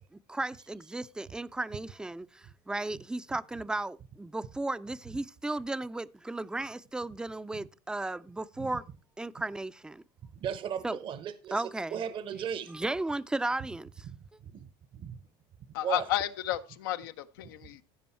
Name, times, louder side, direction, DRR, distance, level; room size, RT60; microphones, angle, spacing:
voice 1, 0.1-8.8 9.2-10.0 10.8-11.0 11.5-12.0 12.7-14.1, right 2 dB, 5° right, 0.4 m, -35 dB
voice 2, 10.3-12.8 14.1-14.2 14.4-14.7 14.9-15.2 15.8-16.0, right 8 dB, 50° right, 0.9 m, -36 dB
voice 3, 15.7-17.8, left 13 dB, 90° left, 0.7 m, -32 dB
15.0 x 5.4 x 4.4 m
supercardioid pair, 95°, 11 cm